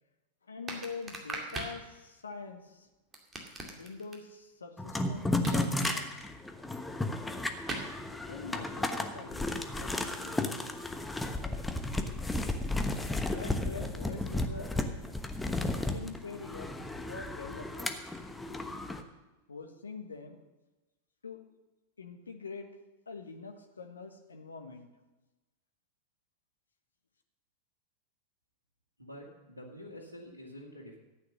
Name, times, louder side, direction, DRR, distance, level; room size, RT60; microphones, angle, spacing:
voice 1, 0.4-2.9 3.7-6.3 8.3-10.6 13.3-14.7 15.9-16.7 17.1-17.9 18.2-18.3 19.5-20.4 21.2-21.4 22.0-22.7 23.1-24.9, left 4 dB, 75° left, 5 dB, 1.5 m, -44 dB
sound 1, 0.7-1.8 3.1-4.2 5.4-6.0 7.7-7.9, right 3 dB, 20° right, 2.3 m, -38 dB
sound 2, 4.8-19.0, left 2 dB, 5° left, 1.1 m, -34 dB
voice 2, 29.0-31.0, equal, 85° right, -3 dB, 2.4 m, -47 dB
14.0 x 9.3 x 6.5 m, 1.1 s
figure-of-eight pair, 90°, 0 cm